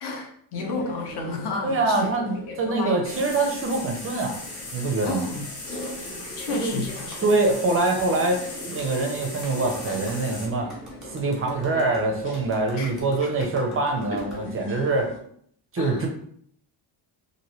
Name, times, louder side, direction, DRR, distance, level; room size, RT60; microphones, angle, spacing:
voice 1, 0.0-2.1 2.5-3.0 5.0-5.4 6.4-7.2 12.8-12.9 13.2-13.3 14.1-14.2 15.8-16.1, left 3 dB, 55° left, 2 dB, 0.8 m, -32 dB
sound 1, 0.5-15.2, left 1 dB, 25° left, 0.7 m, -41 dB
voice 2, 1.6-4.4 4.7-5.3 6.4-6.8 7.2-8.4 8.7-10.7 11.1-15.1 15.7-16.1, right 2 dB, 30° right, 3 dB, 0.4 m, -24 dB
sound 2, 3.0-10.5, left 2 dB, 80° left, 1.5 m, -38 dB
Clapping, 7.1-7.2 8.0-8.1 8.8-8.9 9.4-9.5 10.1-10.2 10.7-14.4, right 1 dB, ahead, 0.9 m, -45 dB
3.0 x 2.6 x 2.8 m, 0.64 s
cardioid pair, 165°, 48 cm